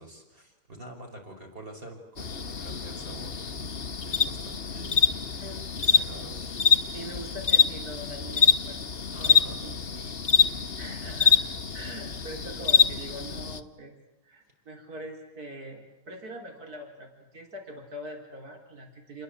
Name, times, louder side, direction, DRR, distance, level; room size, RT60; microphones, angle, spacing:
voice 1, 0.0-3.7 4.0-5.2 5.8-6.6 9.1-9.7 10.2-10.3, right 1 dB, 35° right, 3 dB, 5.3 m, -46 dB
sound 1, 2.2-13.6, left 6 dB, 40° left, 1.3 m, -25 dB
voice 2, 5.2-5.7 6.9-8.8 9.2-10.1 10.5-11.4 11.7-14.0 14.2-19.2, equal, 65° right, 3 dB, 4.3 m, -43 dB
29.5 x 21.5 x 8.5 m, 0.89 s
omnidirectional pair, 1.7 m